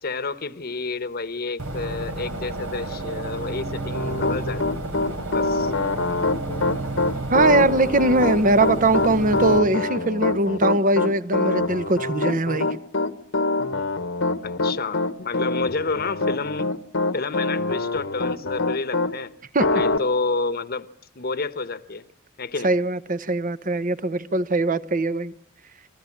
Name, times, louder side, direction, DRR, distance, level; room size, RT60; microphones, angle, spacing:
voice 1, 0.0-4.8 5.3-5.7 14.4-16.7 17.1-19.3 19.7-20.9 21.2-22.0 22.4-22.7, left 3 dB, 50° left, 1.1 m, -29 dB
sound 1, 1.6-9.6, right 2 dB, 80° right, 3.7 m, -31 dB
Piano, 3.9-19.1 19.6-20.0, left 3 dB, 75° left, 1.3 m, -24 dB
voice 2, 7.3-12.7 19.5-19.7 22.6-25.3, right 2 dB, 45° right, 1.0 m, -21 dB
28.5 x 20.0 x 8.6 m
head